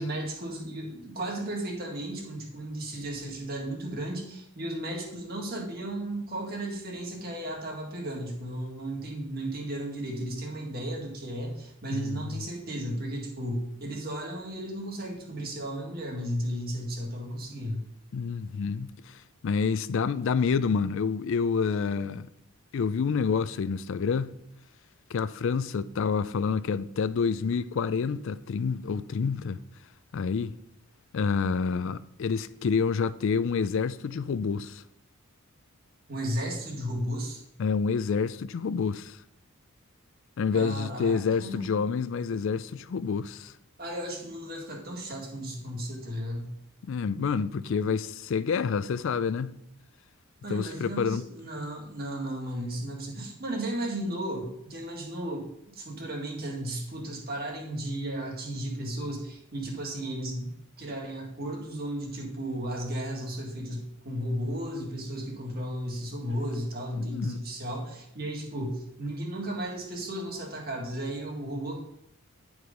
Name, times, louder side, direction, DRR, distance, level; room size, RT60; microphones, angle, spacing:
voice 1, 0.0-17.8 36.1-37.4 40.5-41.7 43.8-46.5 50.4-71.8, right 1 dB, 45° right, 1.9 m, -34 dB
voice 2, 11.9-12.5 18.1-22.3 22.7-24.3 25.1-29.6 30.1-30.5 31.1-34.8 37.6-39.2 40.4-43.5 46.9-49.6 50.5-51.2 67.0-67.4, left 5 dB, 60° left, 0.4 m, -28 dB
9.9 x 4.8 x 5.1 m
head